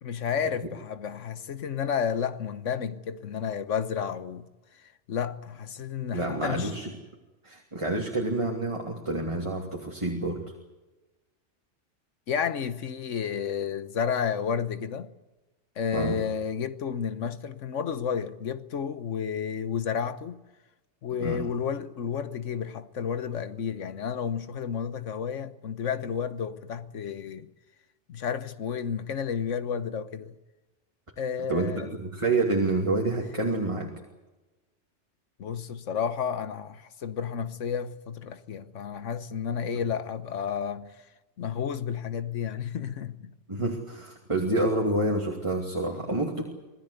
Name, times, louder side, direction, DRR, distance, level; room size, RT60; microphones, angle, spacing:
voice 1, 0.0-4.5 4.7-6.7 12.3-15.1 15.8-20.4 21.0-27.5 28.1-30.3 31.2-31.9 35.4-41.0 41.4-43.3, left 7 dB, 90° left, 1.4 m, -31 dB
voice 2, 6.1-6.9 7.4-10.4 15.9-16.2 21.2-21.4 31.5-33.9 43.5-46.4, right 2 dB, 25° right, 2.7 m, -28 dB
26.5 x 17.5 x 8.2 m
omnidirectional pair, 1.2 m